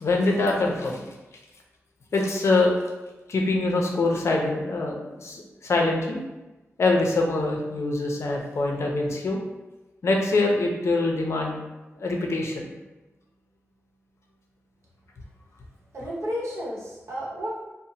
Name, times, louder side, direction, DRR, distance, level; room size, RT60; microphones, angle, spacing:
voice 1, 0.0-1.0 2.1-2.7 3.3-6.2 6.8-9.4 10.0-11.6 11.9-12.7, left 2 dB, 70° left, 0 dB, 0.5 m, -24 dB
voice 2, 15.9-17.5, equal, 75° right, -5 dB, 0.8 m, -32 dB
2.8 x 2.0 x 2.6 m, 1.1 s
wide cardioid pair, 70°, 5 cm